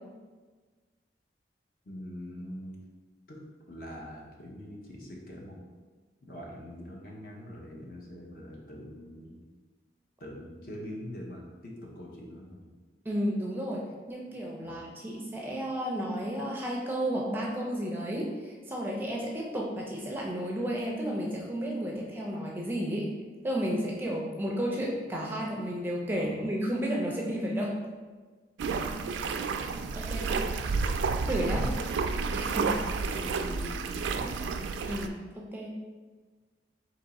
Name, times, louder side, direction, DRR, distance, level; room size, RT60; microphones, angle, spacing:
voice 1, 1.8-2.8 3.3-5.6 6.2-9.4 10.2-12.7 14.6-14.8 26.2-26.5 28.8-29.4 30.3-30.6 31.6-31.7 32.6-34.4, equal, 50° left, -2 dB, 0.8 m, -44 dB
voice 2, 13.0-23.1 23.4-27.8 29.9-30.3 31.2-31.6 32.3-32.8 34.9-35.7, equal, 10° right, -3 dB, 0.4 m, -32 dB
sound 1, 28.6-35.1, right 4 dB, 85° right, 0.3 m, -31 dB
3.6 x 2.9 x 4.1 m, 1.4 s
head